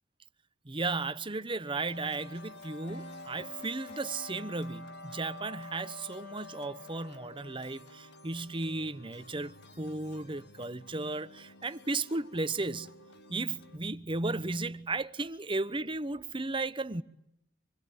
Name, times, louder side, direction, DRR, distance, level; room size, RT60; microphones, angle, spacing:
voice 1, 0.6-12.9 13.3-17.0, right 3 dB, 30° right, 1.0 m, -35 dB
sound 1, 1.9-13.8, left 3 dB, 65° left, 1.9 m, -50 dB
sound 2, 2.9-5.8, equal, 40° left, 3.1 m, -54 dB
27.0 x 21.5 x 9.6 m
head